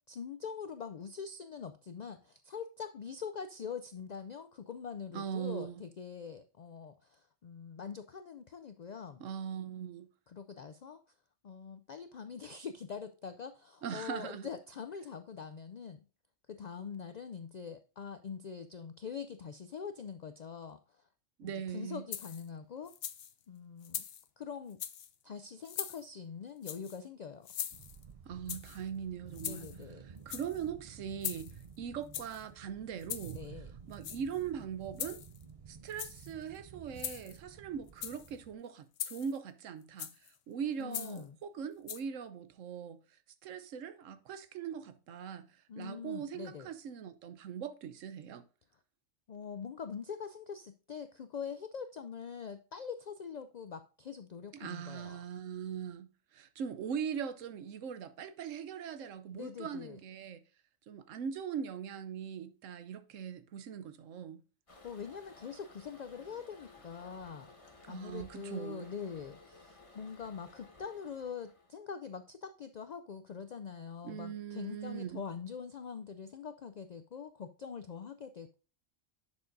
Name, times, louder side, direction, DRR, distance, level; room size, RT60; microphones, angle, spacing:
voice 1, 0.0-9.2 10.3-11.0 11.4-16.0 16.5-21.0 21.4-22.9 23.5-24.0 24.4-24.8 25.2-27.5 29.4-30.0 33.3-33.7 40.8-41.4 45.7-46.7 49.3-55.2 59.3-60.0 64.8-67.5 67.9-78.5, left 6 dB, 80° left, 0.3 m, -44 dB
voice 2, 5.1-5.8 9.2-10.1 13.8-14.5 21.4-22.0 28.2-29.7 30.0-33.4 33.9-35.2 35.7-40.1 40.5-43.0 43.4-45.5 45.8-48.4 54.5-60.4 60.9-64.4 67.8-68.9 74.0-75.2, right 7 dB, 80° right, 1.1 m, -41 dB
sound 1, 22.1-22.5 22.9-23.3 23.8-24.3 24.7-25.1 25.6-26.0 26.6-27.0 27.4-28.0 28.5-28.8 29.3-29.8 30.2-30.6 31.2-31.6 32.1-32.4 33.0-33.4 33.9-34.4 35.0-35.4 35.9-36.3 37.0-37.4 37.9-38.3 39.0-39.4 40.0-40.3 40.9-41.2 41.9-42.0, left 9 dB, 60° left, 0.8 m, -41 dB
sound 2, 27.7-38.6, right 7 dB, 55° right, 0.4 m, -52 dB
Toilet flush, 64.7-71.8, left 2 dB, 25° left, 1.2 m, -57 dB
10.5 x 7.0 x 2.6 m
omnidirectional pair, 1.3 m